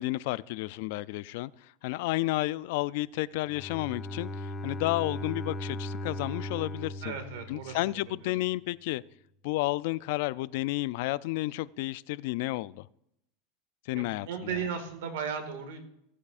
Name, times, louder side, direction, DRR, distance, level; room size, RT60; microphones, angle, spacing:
voice 1, 0.0-1.5 1.8-7.2 7.5-9.0 9.4-12.9 13.9-14.6, left 18 dB, 65° left, 0.3 m, -31 dB
Bowed string instrument, 3.5-8.3, left 1 dB, 15° left, 1.0 m, -38 dB
voice 2, 7.0-8.0 14.0-15.8, right 7 dB, 80° right, 1.9 m, -36 dB
16.0 x 8.3 x 2.5 m
supercardioid pair, 140°, 0 cm